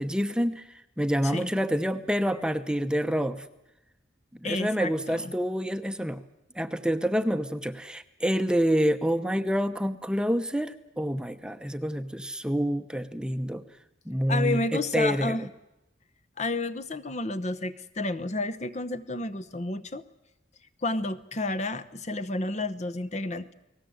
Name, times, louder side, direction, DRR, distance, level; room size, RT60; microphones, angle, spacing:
voice 1, 0.0-3.5 4.4-6.2 6.5-13.6 14.1-15.5, equal, 5° right, 9 dB, 0.9 m, -27 dB
voice 2, 4.4-5.3 14.3-15.5 16.4-20.0 20.8-23.5, left 2 dB, 35° left, 11 dB, 0.9 m, -31 dB
30.0 x 19.5 x 7.9 m, 0.92 s
head